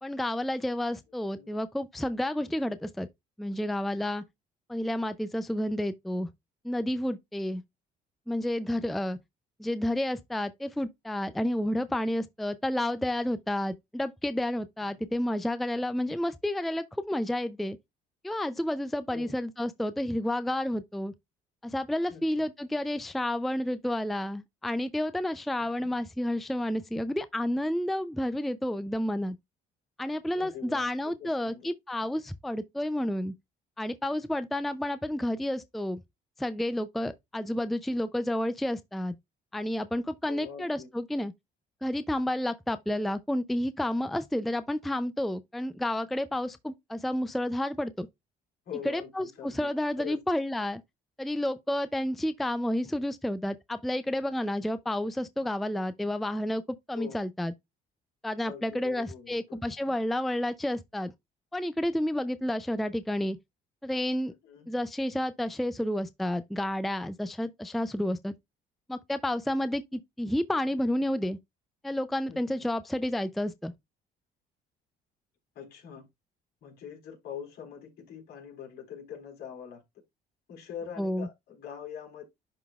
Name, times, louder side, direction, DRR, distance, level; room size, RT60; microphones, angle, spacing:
voice 1, 0.0-3.1 3.4-4.2 4.7-6.3 6.6-7.6 8.3-9.2 9.6-17.8 18.2-21.1 21.6-29.4 30.0-33.3 33.8-36.0 36.4-39.1 39.5-41.3 41.8-48.1 48.8-50.8 51.2-56.6 56.9-57.5 58.2-61.1 61.5-63.4 63.8-64.3 64.7-68.3 68.9-71.4 71.8-73.7 81.0-81.3, left 1 dB, ahead, 0.4 m, -30 dB
voice 2, 22.1-22.5 25.6-25.9 30.3-31.7 40.3-40.9 48.7-49.7 50.0-50.2 56.9-57.2 58.4-59.6 64.3-64.7 72.3-72.6 75.6-76.1 76.6-79.8 80.5-82.3, left 8 dB, 70° left, 3.7 m, -43 dB
11.0 x 3.9 x 2.3 m
cardioid pair, 110°, 17 cm